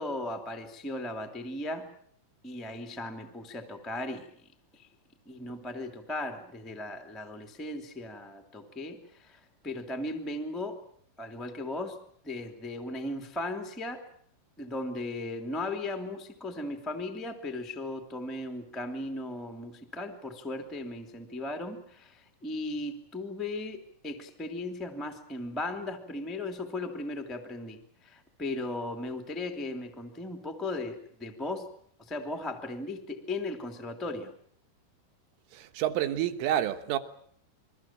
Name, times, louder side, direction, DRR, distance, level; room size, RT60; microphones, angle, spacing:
voice 1, 0.0-1.9 2.4-4.9 5.2-10.8 11.2-14.1 14.6-31.7 32.0-34.3, left 2 dB, ahead, 1.3 m, -37 dB
voice 2, 35.5-37.0, right 11 dB, 85° right, 3.8 m, -29 dB
27.5 x 23.0 x 7.5 m
omnidirectional pair, 5.6 m